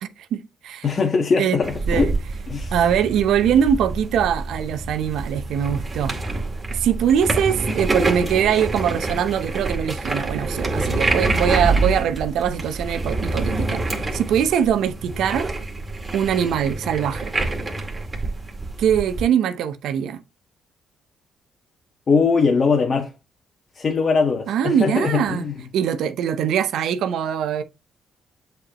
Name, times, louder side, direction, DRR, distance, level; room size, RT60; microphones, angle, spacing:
voice 1, 0.0-0.9 1.4-1.6 1.9-2.1 2.7-6.2 6.7-15.5 16.1-17.3 18.8-20.2 24.5-25.4 25.7-27.6, right 8 dB, 80° right, 0.8 m, -22 dB
voice 2, 0.8-2.1 2.5-2.7 22.1-23.1 23.7-25.5, left 5 dB, 45° left, 1.5 m, -20 dB
sound 1, 1.6-19.2, right 2 dB, 25° right, 2.1 m, -26 dB
7.7 x 4.5 x 3.0 m
cardioid pair, 90°, 0 cm